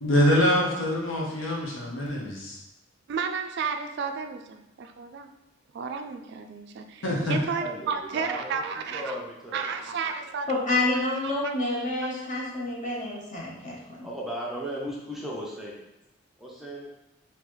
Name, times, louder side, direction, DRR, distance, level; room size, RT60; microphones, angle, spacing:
voice 1, 0.0-2.6 7.0-7.4, equal, 70° left, -3 dB, 0.9 m, -24 dB
voice 2, 3.1-5.3 5.7-7.0 7.3-9.1 9.5-10.5 12.0-12.2, right 5 dB, 55° right, 6 dB, 0.3 m, -32 dB
voice 3, 7.6-9.6 14.0-15.8 16.4-16.9, equal, ahead, -3 dB, 0.5 m, -36 dB
voice 4, 10.5-14.1, left 2 dB, 40° left, -4 dB, 1.0 m, -28 dB
3.9 x 2.9 x 3.1 m, 0.89 s
head